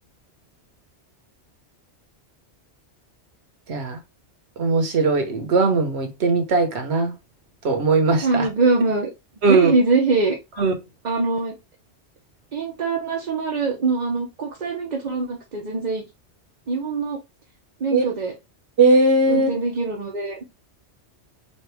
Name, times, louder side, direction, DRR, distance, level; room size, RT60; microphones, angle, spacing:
voice 1, 4.6-7.1 7.6-8.5 9.4-9.7 10.6-10.7 17.9-18.0 18.8-19.5, right 3 dB, 65° right, 1.2 m, -19 dB
voice 2, 8.2-9.1 9.5-10.4 11.0-11.5 12.5-16.0 16.7-17.2 17.8-18.3 19.3-20.4, right 4 dB, 45° right, 0.8 m, -23 dB
4.3 x 2.6 x 3.3 m
omnidirectional pair, 1.2 m